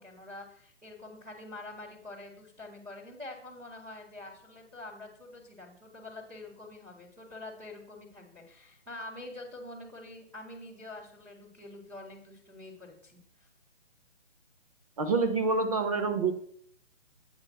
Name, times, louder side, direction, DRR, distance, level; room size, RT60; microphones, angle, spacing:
voice 1, 0.0-13.5, left 2 dB, 5° right, -12 dB, 0.6 m, -46 dB
voice 2, 15.0-16.3, right 4 dB, 30° right, 6 dB, 0.9 m, -27 dB
8.1 x 4.7 x 5.8 m, 0.65 s
figure-of-eight pair, 145°, 37 cm